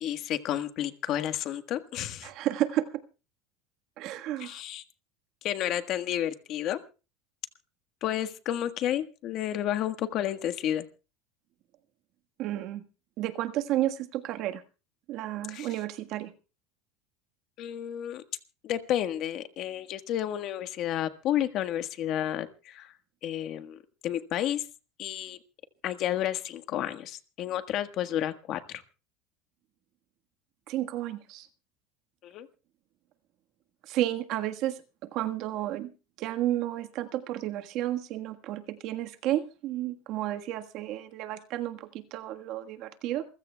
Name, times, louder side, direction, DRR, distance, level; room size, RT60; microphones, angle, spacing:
voice 1, 0.0-2.3 4.4-4.8 5.4-6.8 8.0-10.9 15.5-15.7 17.6-18.2 18.6-22.9 23.2-24.6 25.0-25.4 25.8-28.8 32.2-32.5, left 11 dB, 45° left, 9 dB, 1.4 m, -31 dB
voice 2, 2.2-2.9 4.0-4.6 12.4-12.8 13.2-14.6 15.1-16.3 30.7-31.5 33.8-35.9 36.2-43.3, right 13 dB, 50° right, 7 dB, 1.5 m, -32 dB
28.0 x 15.5 x 2.3 m, 0.33 s
supercardioid pair, 140°, 0 cm